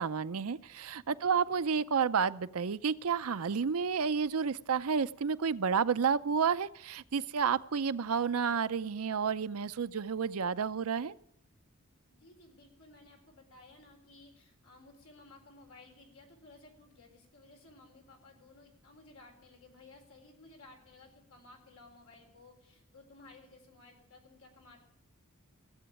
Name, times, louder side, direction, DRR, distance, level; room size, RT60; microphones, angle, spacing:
voice 1, 0.0-11.1, right 6 dB, 85° right, 13 dB, 0.6 m, -30 dB
voice 2, 1.2-1.6 12.1-24.8, left 2 dB, 70° left, 2 dB, 4.2 m, -57 dB
15.5 x 8.0 x 9.8 m, 0.74 s
head